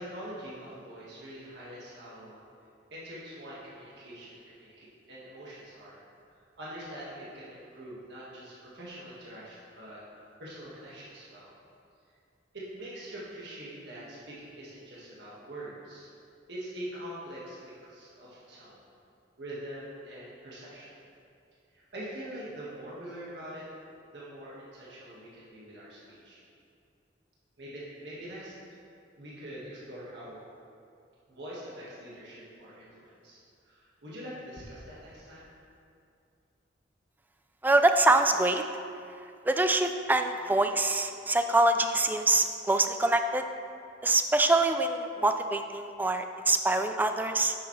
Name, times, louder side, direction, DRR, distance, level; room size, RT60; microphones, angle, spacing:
voice 1, 0.0-2.4 2.9-6.0 6.3-10.0 10.4-11.5 12.5-16.1 16.5-18.8 19.4-20.9 21.7-23.7 24.1-26.4 27.6-28.5 29.2-30.4 31.3-35.5, right 1 dB, 65° right, -7 dB, 1.7 m, -44 dB
voice 2, 37.6-38.6 39.5-43.4 44.0-47.5, right 2 dB, 10° right, 7 dB, 0.3 m, -25 dB
9.4 x 6.8 x 3.2 m, 2.5 s
head